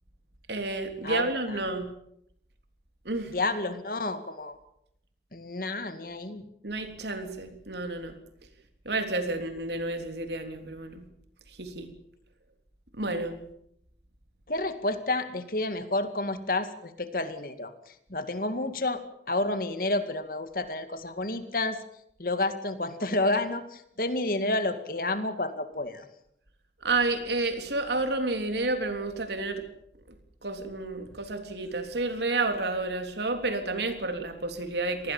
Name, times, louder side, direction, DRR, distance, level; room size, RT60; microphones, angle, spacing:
voice 1, 0.5-1.9 3.1-3.3 6.6-8.1 8.9-11.0 11.6-11.9 13.0-13.4 26.8-29.6 30.4-35.1, right 2 dB, 70° right, 7 dB, 3.4 m, -30 dB
voice 2, 1.0-1.6 3.3-4.6 5.3-6.5 14.5-21.8 22.2-26.1, left 2 dB, 50° left, 10 dB, 2.2 m, -30 dB
26.0 x 19.5 x 7.3 m, 0.74 s
head